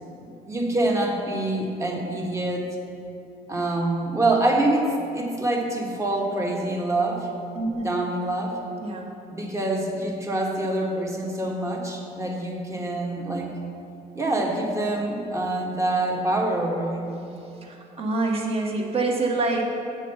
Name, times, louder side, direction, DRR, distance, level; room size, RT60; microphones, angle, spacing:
voice 1, 0.2-2.8 3.5-7.3 7.8-8.6 9.3-13.5 14.1-17.2, right 2 dB, 15° right, 0 dB, 1.1 m, -26 dB
voice 2, 7.5-7.8 8.8-9.1 17.6-19.7, right 3 dB, 35° right, 0 dB, 1.2 m, -26 dB
7.1 x 4.4 x 6.9 m, 2.8 s
cardioid pair, 110°, 17 cm